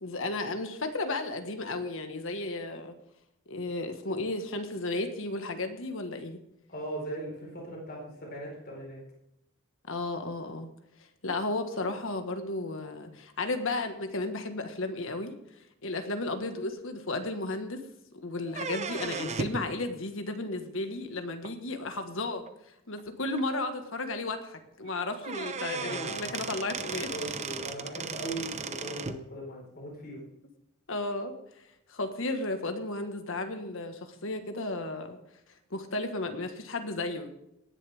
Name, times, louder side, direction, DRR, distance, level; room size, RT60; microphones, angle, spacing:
voice 1, 0.0-2.9 3.5-6.4 9.9-10.7 11.2-15.3 15.8-17.8 18.1-22.4 22.9-27.1 30.9-31.3 31.9-35.2 35.7-37.3, left 2 dB, 65° left, 6 dB, 1.6 m, -34 dB
voice 2, 6.7-9.0 25.7-26.5 27.1-30.2, right 1 dB, 45° left, -2 dB, 4.8 m, -39 dB
sound 1, 18.5-19.7 21.4-21.5 22.5-22.6 23.0-23.1 23.4-23.5 24.8-24.9 25.2-29.2, right 5 dB, 30° right, 0.7 m, -36 dB
18.5 x 10.5 x 3.6 m, 0.83 s
head